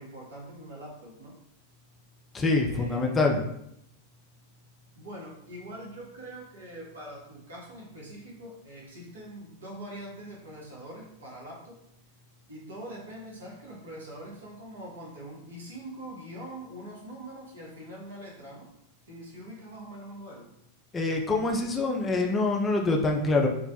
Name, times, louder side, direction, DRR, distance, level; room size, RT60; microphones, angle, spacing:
voice 1, 0.0-1.4 2.7-3.3 5.0-11.8 12.5-18.7 19.1-20.5, right 1 dB, 70° right, -4 dB, 0.8 m, -43 dB
voice 2, 2.3-3.4 20.9-23.5, left 3 dB, 15° left, 1 dB, 0.3 m, -25 dB
2.3 x 2.0 x 2.7 m, 0.78 s
figure-of-eight pair, 90°, 0 cm